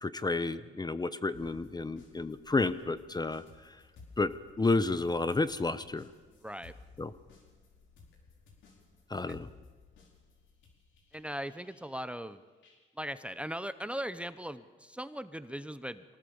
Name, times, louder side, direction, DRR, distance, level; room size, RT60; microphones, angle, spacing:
voice 1, 0.0-3.4 4.2-4.3 4.6-6.1 7.0-7.1 9.1-9.5, left 3 dB, 20° left, 14 dB, 0.9 m, -31 dB
sound 1, 1.3-13.0 13.3-14.0, left 4 dB, 75° left, 4.7 m, -58 dB
voice 2, 6.4-6.7 9.3-9.4 11.1-12.4 13.0-16.0, equal, 5° right, 13 dB, 0.9 m, -39 dB
24.0 x 18.5 x 7.2 m, 1.4 s
cardioid pair, 90°, 20 cm